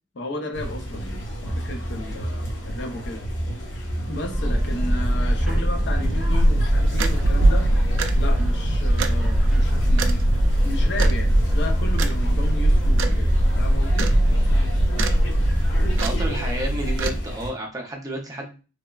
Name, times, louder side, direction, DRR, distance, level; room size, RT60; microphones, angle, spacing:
voice 1, 0.1-1.2 1.6-3.2 4.1-7.7 8.2-10.2 10.6-14.1, left 1 dB, 60° left, 4 dB, 0.6 m, -34 dB
sound 1, 0.5-17.5, equal, 80° left, 0.9 m, -32 dB
sound 2, 4.3-16.6, equal, 5° right, 0.9 m, -23 dB
sound 3, 6.3-17.2, right 1 dB, 80° right, 0.3 m, -23 dB
voice 2, 16.0-18.6, equal, 20° right, 0 dB, 0.5 m, -31 dB
3.3 x 2.0 x 2.3 m, 0.33 s
head